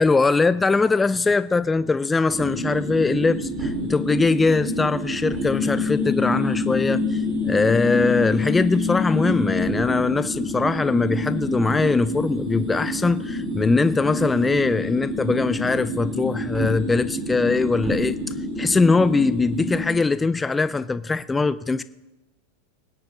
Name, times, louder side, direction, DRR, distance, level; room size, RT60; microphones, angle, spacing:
voice 1, 0.0-18.2 18.6-21.8, left 3 dB, 10° left, 14 dB, 0.4 m, -21 dB
sound 1, 2.3-19.9, left 1 dB, 35° right, 3.8 m, -27 dB
23.5 x 9.9 x 3.9 m, 1.0 s
supercardioid pair, 125°, 0 cm